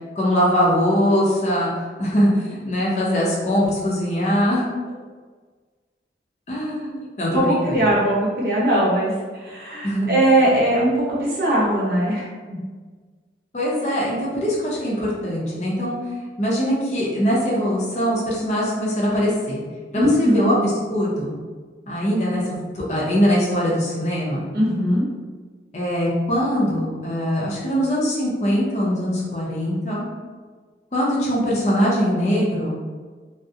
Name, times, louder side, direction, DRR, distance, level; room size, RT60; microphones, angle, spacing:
voice 1, 0.2-1.7 2.0-4.7 6.5-7.8 9.8-10.2 13.5-16.0 16.4-19.6 19.9-21.3 21.9-24.4 25.7-30.0 30.9-32.8, equal, 40° left, -5 dB, 0.5 m, -22 dB
voice 2, 7.3-12.6 19.9-20.5 24.5-25.0, right 1 dB, 55° right, -6 dB, 0.7 m, -20 dB
2.3 x 2.0 x 2.6 m, 1.5 s
head